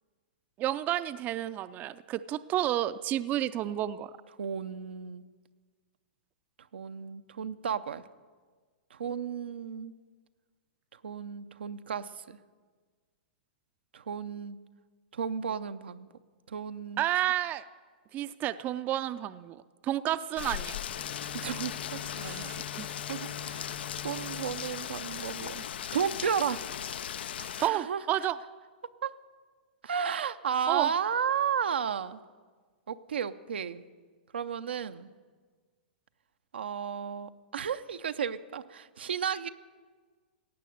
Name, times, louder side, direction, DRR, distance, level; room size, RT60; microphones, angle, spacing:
voice 1, 0.6-4.1 17.0-17.6 18.1-20.8 22.2-22.9 27.6-28.4 30.7-30.9, right 13 dB, 30° right, 14 dB, 0.4 m, -31 dB
voice 2, 4.4-5.3 6.7-8.0 8.9-9.9 11.0-12.4 13.9-14.6 15.1-16.1 16.5-17.0 21.3-22.5 22.8-23.8 24.0-25.6 25.9-26.6 27.4-28.0 29.0-29.1 29.8-32.2 32.9-33.8 34.3-35.1 36.5-39.5, right 7 dB, 85° right, 10 dB, 0.5 m, -33 dB
Rain, 20.4-27.7, left 9 dB, 75° left, 0.4 m, -38 dB
Bowed string instrument, 20.9-26.1, left 8 dB, 30° left, 0.9 m, -46 dB
16.5 x 9.1 x 6.4 m, 1.5 s
hypercardioid pair, 120°, 6 cm